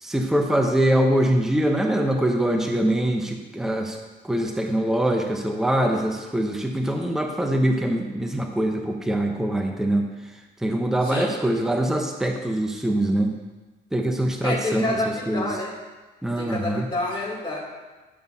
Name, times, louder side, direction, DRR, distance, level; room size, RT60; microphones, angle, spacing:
voice 1, 0.0-4.0 4.2-10.1 10.6-13.3 13.9-15.0 15.3-15.5 16.2-16.9, right 1 dB, ahead, 3 dB, 0.8 m, -23 dB
voice 2, 11.0-11.3 14.4-15.7 16.4-17.6, left 2 dB, 25° left, -5 dB, 2.8 m, -28 dB
11.0 x 6.7 x 2.7 m, 1.2 s
cardioid pair, 90°, 20 cm